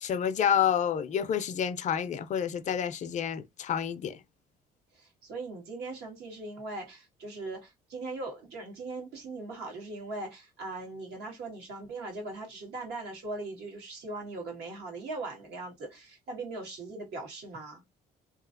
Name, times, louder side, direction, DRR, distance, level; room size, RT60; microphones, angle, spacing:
voice 1, 0.0-4.2, left 8 dB, 45° left, 0.4 m, -29 dB
voice 2, 4.9-17.8, right 2 dB, 75° right, 1.6 m, -40 dB
2.8 x 2.7 x 2.5 m
cardioid pair, 110°, 17 cm